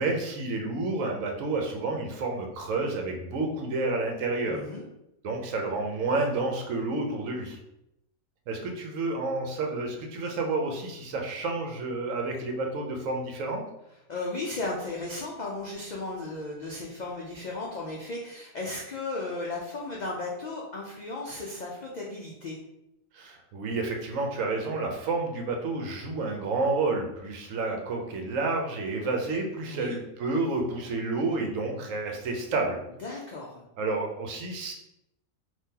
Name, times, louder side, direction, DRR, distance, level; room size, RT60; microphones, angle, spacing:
voice 1, 0.0-4.6 5.2-7.6 8.5-13.6 23.1-32.8 33.8-34.7, right 3 dB, 75° right, 2 dB, 1.0 m, -30 dB
voice 2, 4.5-4.8 14.1-22.6 29.7-30.0 33.0-33.6, left 2 dB, 80° left, -3 dB, 0.4 m, -35 dB
3.6 x 2.6 x 2.8 m, 0.85 s
omnidirectional pair, 1.4 m